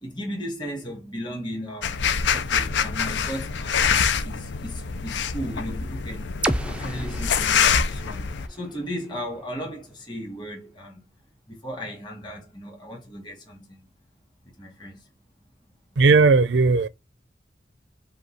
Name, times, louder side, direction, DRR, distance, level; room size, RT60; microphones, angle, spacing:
voice 1, 0.0-2.0 2.3-3.9 4.2-6.3 6.7-11.0 11.5-13.8 14.6-15.1, equal, 25° left, 1.6 m, -36 dB
sound 1, 1.8-8.5, left 6 dB, 75° left, 0.5 m, -25 dB
sound 2, 6.4-10.3, right 1 dB, 5° right, 0.4 m, -33 dB
voice 2, 16.0-16.9, right 3 dB, 75° right, 0.5 m, -16 dB
5.3 x 2.3 x 4.0 m
head